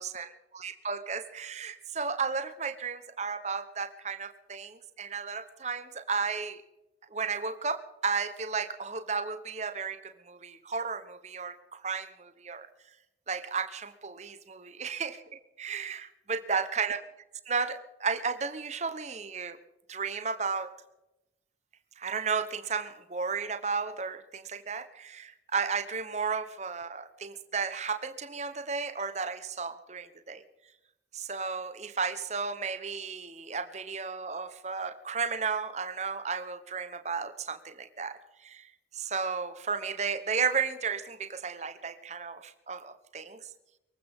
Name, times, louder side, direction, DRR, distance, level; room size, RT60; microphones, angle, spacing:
voice 1, 0.0-6.6 7.1-12.7 13.3-17.0 17.5-19.6 19.9-20.7 22.0-30.4 31.1-43.5, right 5 dB, 40° right, 12 dB, 1.0 m, -34 dB
23.0 x 15.0 x 3.7 m, 0.96 s
head